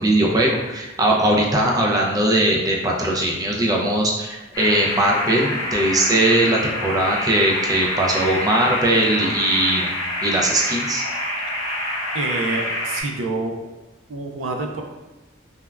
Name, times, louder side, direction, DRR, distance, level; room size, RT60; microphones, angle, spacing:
voice 1, 0.0-11.0, right 1 dB, 20° right, -1 dB, 0.4 m, -20 dB
sound 1, 4.5-13.0, left 1 dB, 80° left, 0.6 m, -27 dB
voice 2, 12.1-13.5 14.1-14.8, right 3 dB, 90° right, 2 dB, 0.4 m, -27 dB
3.3 x 2.1 x 2.3 m, 1.1 s
head